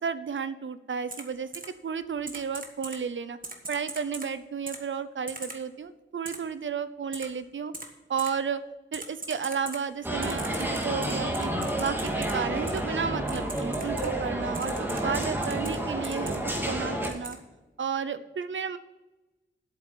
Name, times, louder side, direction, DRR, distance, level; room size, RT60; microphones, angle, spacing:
voice 1, 0.0-1.5 1.8-3.4 3.7-7.7 8.1-8.6 8.9-11.5 11.8-17.4 17.8-18.8, right 6 dB, 75° right, 13 dB, 0.7 m, -32 dB
Typing, 1.1-1.2 1.5-1.7 2.3-3.0 3.4-4.3 4.7-4.8 5.3-5.6 6.2-6.4 7.1-7.2 7.7-7.9 8.2-8.3 8.9-9.8 10.2-12.3 12.7-12.8 13.3-14.1 14.5-15.8 16.0-16.6 17.0-17.3, right 3 dB, 45° right, 1.6 m, -39 dB
sound 1, 10.0-17.1, right 1 dB, 10° right, 2.4 m, -30 dB
8.2 x 7.6 x 8.6 m, 1.1 s
wide cardioid pair, 80°, 20 cm